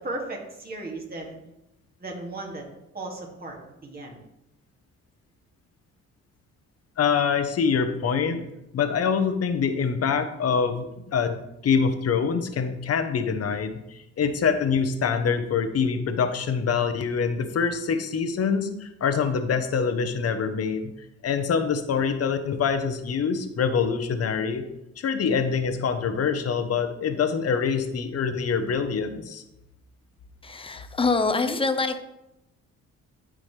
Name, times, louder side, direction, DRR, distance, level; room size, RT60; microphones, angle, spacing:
voice 1, 0.0-1.4 2.0-2.6 2.9-3.6 3.8-4.2 31.2-31.6, right 2 dB, 30° right, -1 dB, 2.4 m, -35 dB
voice 2, 7.0-8.4 8.7-11.4 11.6-20.9 21.2-24.6 25.0-29.4, left 6 dB, 55° left, 8 dB, 1.0 m, -25 dB
voice 3, 30.4-32.0, left 4 dB, 20° left, 8 dB, 0.8 m, -25 dB
12.5 x 5.0 x 3.4 m, 0.89 s
cardioid pair, 90°, 30 cm